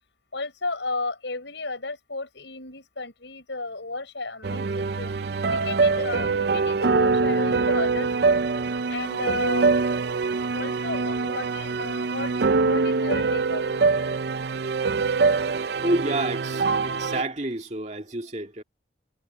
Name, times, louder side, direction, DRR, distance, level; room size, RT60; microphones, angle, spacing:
voice 1, 0.3-5.1 5.5-8.4 8.9-9.7 10.5-13.8, left 3 dB, 75° left, 5.5 m, -33 dB
sound 1, 4.4-17.2, right 4 dB, 55° right, 0.5 m, -24 dB
voice 2, 15.7-18.6, right 1 dB, 35° right, 2.2 m, -29 dB
head